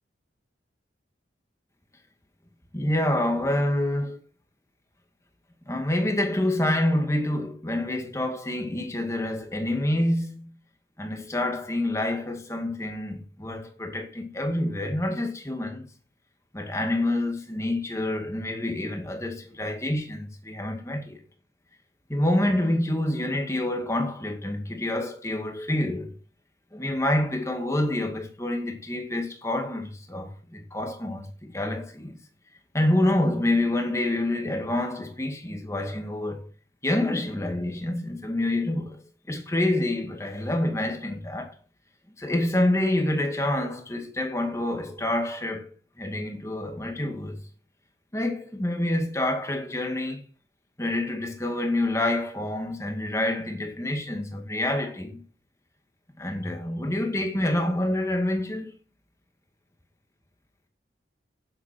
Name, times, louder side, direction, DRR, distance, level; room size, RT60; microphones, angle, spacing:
voice 1, 2.7-4.2 5.7-10.5 11.0-15.9 16.5-21.2 22.1-26.1 26.7-32.2 32.7-36.5 36.8-39.0 39.3-41.6 42.2-47.4 48.1-50.2 50.8-55.2 56.2-58.7, left 1 dB, 15° left, 2.1 m, -27 dB
9.7 x 7.8 x 6.2 m
head